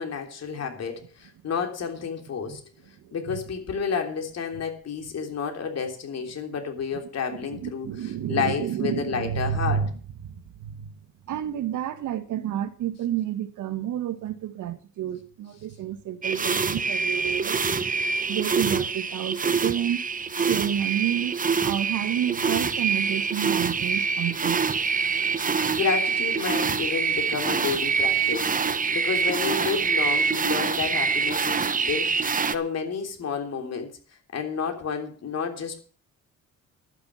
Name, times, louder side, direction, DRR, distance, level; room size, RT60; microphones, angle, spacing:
voice 1, 0.0-2.6 3.1-9.8 25.7-33.9 34.3-35.8, left 6 dB, 55° left, 3.4 m, -30 dB
voice 2, 7.5-9.9 10.2-10.9 11.3-17.9 18.3-20.0 20.4-24.6, right 10 dB, 80° right, 1.6 m, -30 dB
sound 1, 16.2-32.5, right 5 dB, 25° right, 1.0 m, -25 dB
11.5 x 9.8 x 6.2 m
cardioid pair, 90°, 30 cm